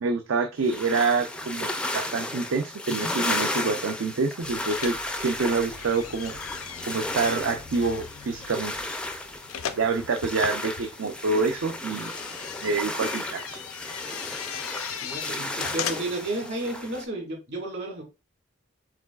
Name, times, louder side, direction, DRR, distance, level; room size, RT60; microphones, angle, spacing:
voice 1, 0.0-6.4 6.9-8.7 9.8-12.1 12.6-13.6, right 4 dB, 70° right, 0.5 m, -27 dB
sound 1, 0.6-17.0, left 1 dB, 5° left, 0.3 m, -34 dB
sound 2, 4.4-16.3, left 8 dB, 85° left, 0.5 m, -39 dB
voice 2, 15.0-18.0, right 2 dB, 50° right, 1.8 m, -32 dB
4.9 x 3.8 x 2.3 m
head